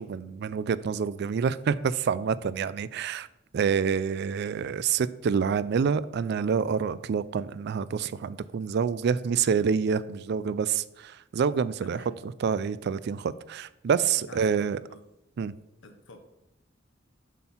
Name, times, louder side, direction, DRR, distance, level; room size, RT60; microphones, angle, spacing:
voice 1, 0.0-3.3 3.5-14.8 15.4-15.5, right 6 dB, 60° right, 17 dB, 0.3 m, -27 dB
voice 2, 11.8-12.2 14.2-15.0 15.8-16.2, left 2 dB, 80° left, 6 dB, 1.0 m, -48 dB
7.2 x 4.4 x 5.7 m, 0.86 s
head